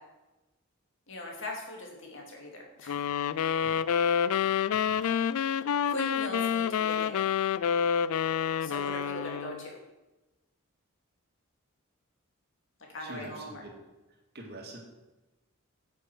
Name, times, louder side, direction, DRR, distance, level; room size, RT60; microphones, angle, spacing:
voice 1, 1.1-3.0 5.9-7.2 8.6-9.8 12.9-13.6, left 1 dB, 55° left, 0 dB, 2.5 m, -40 dB
sound 1, 2.9-9.7, left 8 dB, 75° left, 0.4 m, -28 dB
voice 2, 4.7-5.1 13.0-13.8 14.3-14.8, right 1 dB, 45° right, 1 dB, 2.0 m, -45 dB
9.3 x 7.8 x 6.0 m, 1.1 s
head